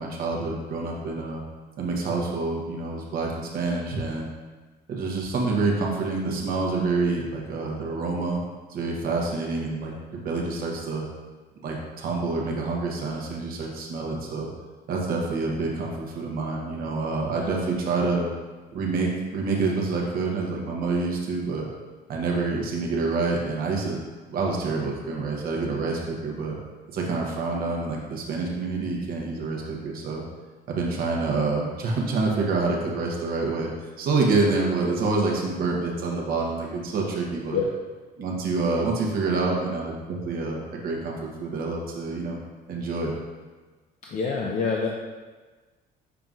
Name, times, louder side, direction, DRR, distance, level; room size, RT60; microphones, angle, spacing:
voice 1, 0.0-1.4 1.8-4.3 4.9-8.4 8.7-11.0 11.6-14.5 14.9-18.3 18.7-21.7 22.1-24.0 24.3-26.6 26.9-30.2 30.7-33.7 34.0-37.6 38.2-42.4 42.7-43.1, right 3 dB, 60° right, -1 dB, 0.9 m, -27 dB
voice 2, 44.1-44.9, left 4 dB, 45° left, -1 dB, 0.5 m, -25 dB
5.9 x 3.7 x 2.4 m, 1.3 s
cardioid pair, 110°, 17 cm